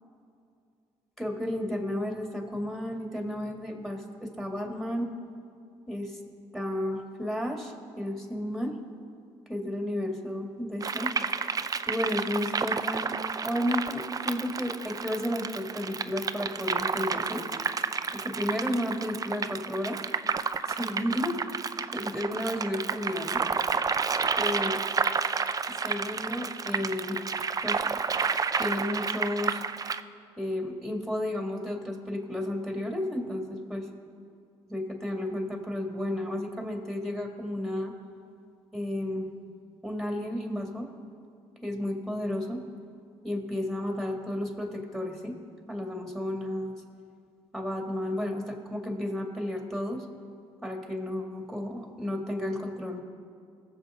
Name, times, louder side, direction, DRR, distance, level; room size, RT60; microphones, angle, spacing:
voice 1, 1.2-5.1 5.9-6.2 6.5-8.8 9.5-11.1 11.9-17.4 18.1-20.0 20.7-23.4 24.4-24.8 25.7-27.2 27.6-27.8 28.6-29.6 30.4-33.9 34.7-37.9 38.7-39.3 39.8-40.9 41.6-42.6 43.2-45.4 45.7-46.8 47.5-50.0 50.6-53.0, left 1 dB, ahead, 1 dB, 2.3 m, -32 dB
sound 1, 10.8-30.0, right 5 dB, 30° right, 0.5 m, -30 dB
19.0 x 7.3 x 3.8 m, 2.4 s
supercardioid pair, 70°, 12 cm